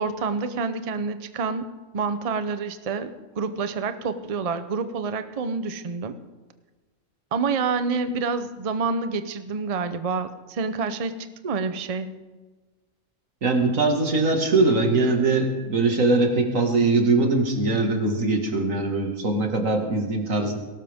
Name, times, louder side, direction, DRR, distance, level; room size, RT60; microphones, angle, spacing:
voice 1, 0.0-1.7 1.9-6.2 7.3-11.1 11.4-12.2, right 4 dB, 35° right, 10 dB, 0.6 m, -28 dB
voice 2, 13.4-20.5, right 3 dB, 80° right, 3 dB, 2.3 m, -21 dB
19.0 x 17.5 x 3.6 m, 1.3 s
omnidirectional pair, 1.4 m